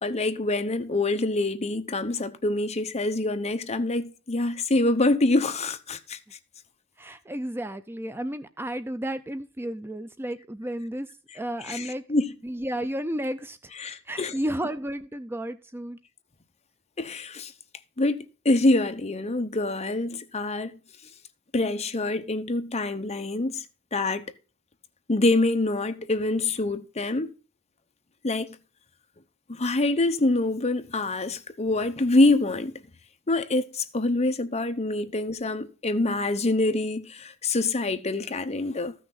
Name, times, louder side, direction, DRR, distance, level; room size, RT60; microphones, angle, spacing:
voice 1, 0.0-6.2 11.7-12.3 13.8-14.3 17.0-17.5 18.0-20.7 21.5-23.6 23.9-24.3 25.1-27.3 28.2-28.5 29.5-32.7 33.3-38.9, left 2 dB, 30° left, 0.9 m, -25 dB
voice 2, 7.0-11.1 11.3-12.0 12.4-13.7 14.0-16.0, right 1 dB, 10° right, 0.4 m, -32 dB
14.0 x 6.3 x 4.0 m
head